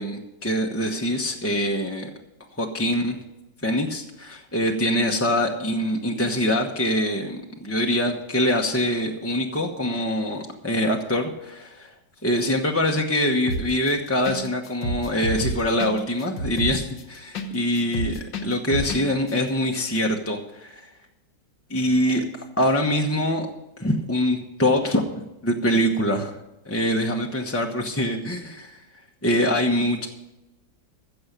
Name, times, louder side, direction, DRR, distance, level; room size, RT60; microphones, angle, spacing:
voice 1, 0.0-2.1 2.6-3.2 3.6-11.9 12.2-20.9 21.7-22.2 22.6-23.5 23.8-26.4 26.6-28.8 29.2-30.1, equal, 10° left, 1 dB, 0.7 m, -24 dB
sound 1, 13.5-13.9 14.2-14.4 14.6-17.5 17.8-19.0 19.3-19.4, equal, 80° left, 1.9 m, -28 dB
15.0 x 7.1 x 6.7 m, 0.97 s
omnidirectional pair, 2.0 m